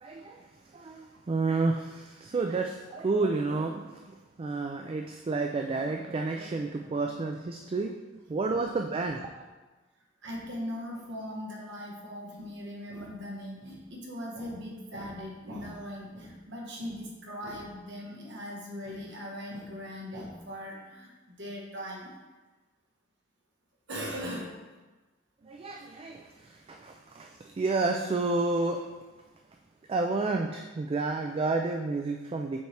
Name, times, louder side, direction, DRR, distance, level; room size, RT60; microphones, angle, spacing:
voice 1, 0.0-7.9 8.3-9.5 25.4-28.8 29.9-32.6, right 3 dB, 30° right, 3 dB, 0.3 m, -30 dB
voice 2, 10.2-22.1 23.9-24.5, equal, 60° right, -2 dB, 1.3 m, -39 dB
6.9 x 4.5 x 3.3 m, 1.2 s
head